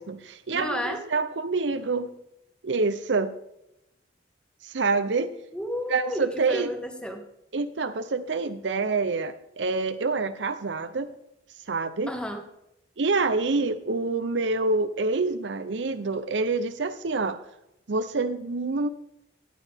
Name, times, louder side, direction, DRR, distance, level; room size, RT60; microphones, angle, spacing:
voice 1, 0.0-2.1 2.6-3.3 4.6-5.3 5.9-6.7 7.5-11.1 11.7-12.1 13.0-17.4 17.9-18.9, right 3 dB, 85° right, 10 dB, 0.7 m, -27 dB
voice 2, 0.5-1.0 5.5-7.2 12.1-12.4, left 1 dB, 5° left, 4 dB, 1.5 m, -32 dB
13.5 x 9.4 x 3.5 m, 0.85 s
head